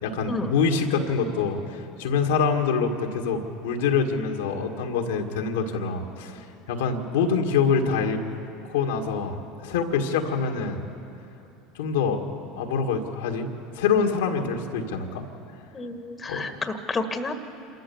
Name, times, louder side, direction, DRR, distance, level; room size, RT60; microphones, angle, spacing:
voice 1, 0.0-8.2 8.7-10.8 11.8-12.2 12.6-13.5 13.8-15.2 16.3-16.4, left 5 dB, 80° left, 2 dB, 1.8 m, -25 dB
voice 2, 15.7-17.3, left 3 dB, 25° left, 8 dB, 1.6 m, -30 dB
27.0 x 14.0 x 7.2 m, 2.8 s
hypercardioid pair, 85°, 0 cm